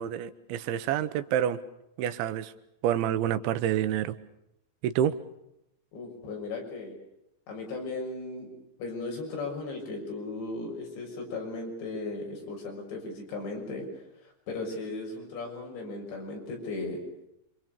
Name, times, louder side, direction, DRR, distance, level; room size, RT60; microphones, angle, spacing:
voice 1, 0.0-1.6 2.0-2.5 2.8-4.2 4.8-5.2, right 10 dB, 90° right, 12 dB, 3.5 m, -28 dB
voice 2, 5.9-7.0 7.5-8.5 8.8-13.9 14.5-17.0, left 3 dB, 75° left, 1 dB, 8.6 m, -36 dB
27.5 x 25.5 x 6.8 m, 0.81 s
omnidirectional pair, 5.1 m